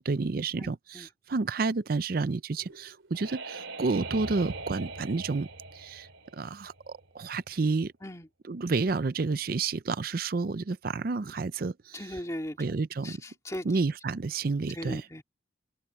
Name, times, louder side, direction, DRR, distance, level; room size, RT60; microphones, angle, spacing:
voice 1, 0.0-5.5 5.7-6.1 6.3-7.9 8.5-12.2 12.6-13.2 13.6-15.1, right 4 dB, 50° right, 0.5 m, -30 dB
sound 1, 2.6-7.2, right 3 dB, 85° right, 3.1 m, -41 dB
voice 2, 11.9-12.6 13.0-13.7 14.7-15.2, left 1 dB, 15° left, 2.5 m, -38 dB
open air
head